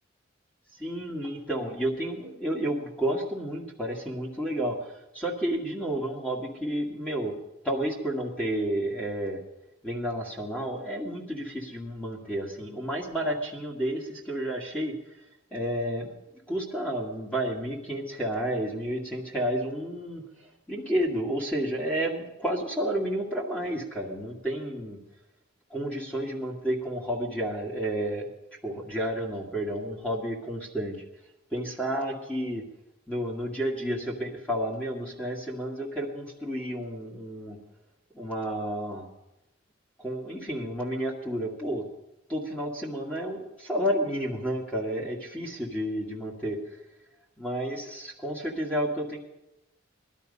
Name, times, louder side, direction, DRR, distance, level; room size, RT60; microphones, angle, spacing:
voice 1, 0.8-4.8 5.1-7.3 7.6-9.4 9.8-14.9 15.5-16.2 16.5-20.2 20.7-25.0 25.7-28.3 28.6-31.0 31.5-32.6 33.1-37.6 38.1-39.1 40.0-41.8 42.3-46.6 47.4-49.2, right 1 dB, 5° left, -3 dB, 2.1 m, -31 dB
18.5 x 12.0 x 5.4 m, 0.92 s
head